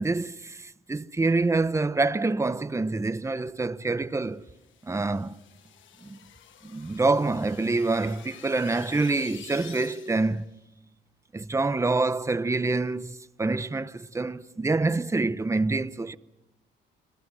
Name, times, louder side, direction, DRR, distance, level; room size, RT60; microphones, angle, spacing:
voice 1, 0.0-4.4 4.8-5.4 6.0-6.2 6.6-10.5 11.3-16.2, right 3 dB, 15° right, 0.8 m, -26 dB
sound 1, 4.4-10.4, left 9 dB, 75° left, 1.3 m, -49 dB
30.0 x 21.0 x 6.3 m
cardioid pair, 90°, 20 cm